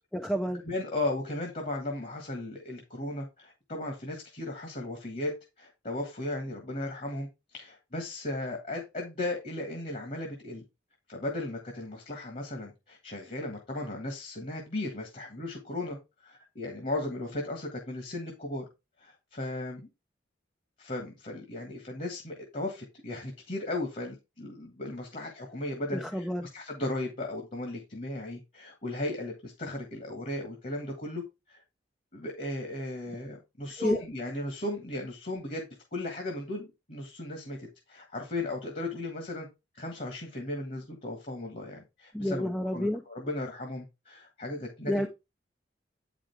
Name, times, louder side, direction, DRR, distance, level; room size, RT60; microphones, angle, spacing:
voice 1, 0.1-0.6 25.9-26.5 33.8-34.0 42.1-43.0 44.9-45.1, equal, 5° left, 0.5 m, -29 dB
voice 2, 0.6-10.6 11.1-16.0 16.2-18.6 19.0-19.9 20.8-26.3 26.5-31.2 31.5-31.6 32.1-35.6 35.9-39.5 39.7-45.1, left 2 dB, 45° left, 1.5 m, -36 dB
8.6 x 5.1 x 3.4 m
head